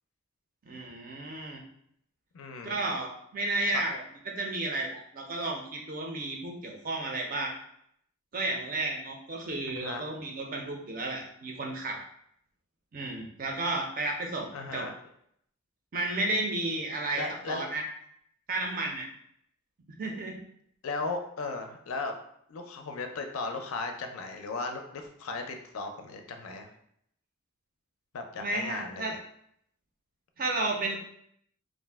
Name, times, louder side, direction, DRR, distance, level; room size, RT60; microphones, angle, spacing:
voice 1, 0.7-1.6 2.6-7.5 8.3-12.0 12.9-14.9 15.9-17.8 18.5-19.1 20.0-20.4 28.4-29.1 30.4-31.0, right 2 dB, 40° right, 1 dB, 0.4 m, -32 dB
voice 2, 2.3-2.8 3.7-3.8 9.8-10.0 14.5-14.9 17.1-17.7 20.8-22.2 22.5-26.7 28.1-29.2, left 3 dB, 75° left, 5 dB, 0.4 m, -36 dB
2.5 x 2.0 x 3.3 m, 0.71 s
head